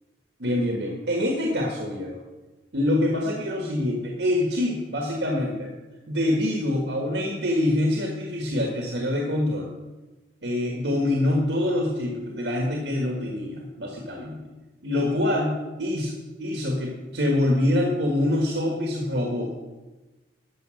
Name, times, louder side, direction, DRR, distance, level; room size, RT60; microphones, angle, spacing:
voice 1, 0.4-2.2 2.7-5.7 6.1-9.7 10.4-14.4 14.8-15.5 15.8-16.1 16.4-19.5, left 1 dB, 80° right, 0 dB, 1.6 m, -25 dB
12.5 x 6.7 x 6.4 m, 1.2 s
head